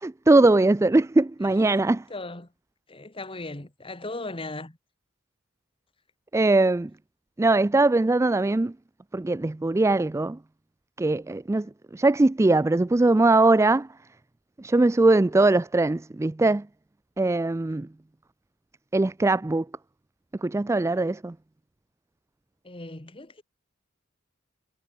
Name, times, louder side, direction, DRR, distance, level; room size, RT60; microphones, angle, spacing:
voice 1, 0.0-2.0 6.3-6.9 7.4-8.7 9.1-10.4 11.0-11.7 11.9-13.9 14.6-16.7 17.2-17.9 18.9-19.7 20.4-21.3, right 2 dB, 15° right, 0.3 m, -21 dB
voice 2, 2.1-2.5 2.9-4.8 22.6-23.4, left 2 dB, 25° left, 1.8 m, -37 dB
head